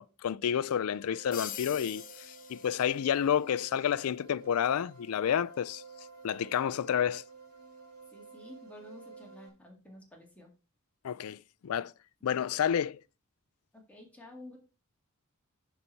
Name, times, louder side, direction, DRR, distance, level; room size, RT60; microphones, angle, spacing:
voice 1, 0.0-5.8 6.2-7.2 11.0-11.9 12.2-13.0, left 8 dB, 75° left, 0.4 m, -30 dB
sound 1, 0.9-9.5, right 5 dB, 85° right, 1.8 m, -52 dB
sound 2, 1.3-3.4, left 9 dB, 40° left, 0.7 m, -43 dB
voice 2, 8.1-10.5 13.7-14.6, left 1 dB, 5° left, 2.0 m, -51 dB
11.0 x 4.2 x 4.5 m
head